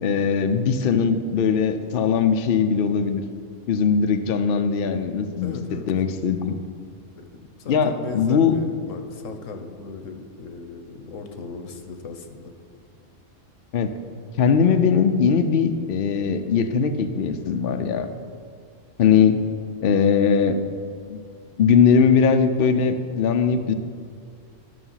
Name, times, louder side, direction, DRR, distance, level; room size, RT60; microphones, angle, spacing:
voice 1, 0.0-3.2 3.7-6.5 7.7-8.6 13.7-13.9 14.4-18.1 19.0-19.4 19.8-20.6 21.1-21.2 21.6-23.7, left 6 dB, 55° left, 7 dB, 0.7 m, -20 dB
voice 2, 5.4-5.9 7.2-12.5, left 4 dB, 85° left, 6 dB, 1.2 m, -37 dB
12.5 x 5.8 x 5.6 m, 2.2 s
omnidirectional pair, 1.3 m